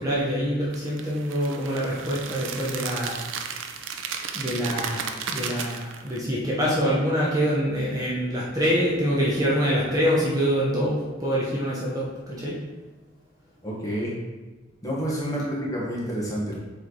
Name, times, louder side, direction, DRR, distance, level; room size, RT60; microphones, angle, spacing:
voice 1, 0.0-3.2 4.3-12.6, equal, 20° right, -6 dB, 0.9 m, -25 dB
sound 1, 0.7-6.2, right 6 dB, 80° right, 0.6 m, -34 dB
voice 2, 13.6-14.1 14.8-16.5, equal, 15° left, -5 dB, 1.4 m, -29 dB
7.4 x 3.4 x 4.0 m, 1.2 s
head